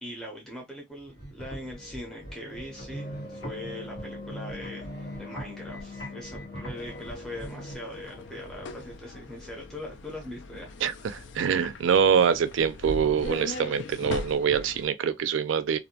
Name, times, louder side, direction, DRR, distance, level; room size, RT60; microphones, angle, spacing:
voice 1, 0.0-4.9 5.2-10.7, left 1 dB, 5° left, 0.6 m, -41 dB
sound 1, 1.0-7.7, right 1 dB, 85° left, 1.3 m, -42 dB
sound 2, 1.6-9.0, left 2 dB, 50° left, 1.0 m, -44 dB
sound 3, 6.8-14.9, left 3 dB, 70° left, 0.4 m, -40 dB
voice 2, 10.8-15.8, right 7 dB, 80° right, 0.4 m, -24 dB
2.5 x 2.1 x 2.7 m
head